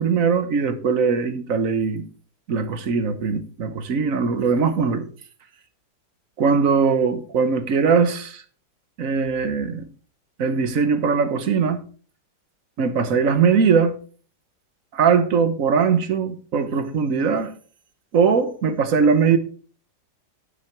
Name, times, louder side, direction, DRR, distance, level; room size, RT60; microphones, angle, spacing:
voice 1, 0.0-2.0 2.5-5.1 6.4-8.4 9.0-9.9 10.4-11.8 12.8-14.0 14.9-17.5 18.1-19.4, right 5 dB, 55° right, 1.4 m, -20 dB
11.5 x 7.0 x 4.5 m
omnidirectional pair, 1.9 m